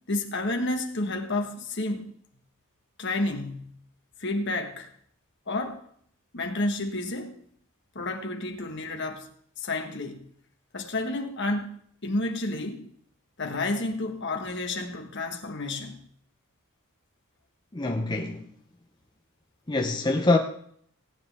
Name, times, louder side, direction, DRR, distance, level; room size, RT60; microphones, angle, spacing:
voice 1, 0.1-2.1 3.0-3.7 4.2-4.9 5.5-5.8 6.3-7.4 7.9-9.3 9.6-10.2 10.7-12.9 13.4-16.0, left 2 dB, 55° left, 1.5 m, -30 dB
voice 2, 17.7-18.5 19.7-20.4, left 2 dB, 20° left, 0.7 m, -24 dB
17.0 x 9.6 x 3.5 m
head